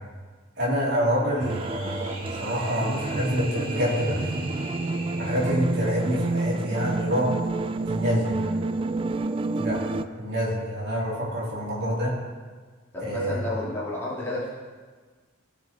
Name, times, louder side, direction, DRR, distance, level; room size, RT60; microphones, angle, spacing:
voice 1, 0.6-4.4 5.1-7.3 7.9-8.4 9.6-9.8 10.2-12.1 13.0-13.4, equal, 55° right, -5 dB, 3.1 m, -27 dB
sound 1, 1.2-5.7, right 2 dB, 85° right, 3.0 m, -40 dB
sound 2, 1.4-10.1, right 2 dB, 25° right, 0.3 m, -29 dB
voice 2, 8.3-8.7 12.9-14.5, left 1 dB, 10° left, -9 dB, 2.7 m, -32 dB
17.0 x 6.0 x 4.4 m, 1.5 s
head